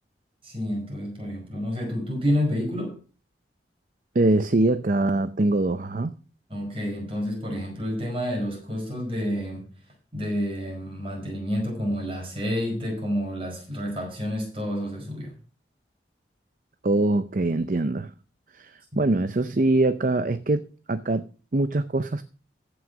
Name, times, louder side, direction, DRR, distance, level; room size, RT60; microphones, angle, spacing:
voice 1, 0.4-3.0 6.5-9.7 10.1-15.3, equal, 30° right, 5.1 m, -29 dB
voice 2, 4.1-6.1 16.8-18.1 18.5-22.2, right 2 dB, 45° right, 0.6 m, -23 dB
14.5 x 6.2 x 6.1 m
head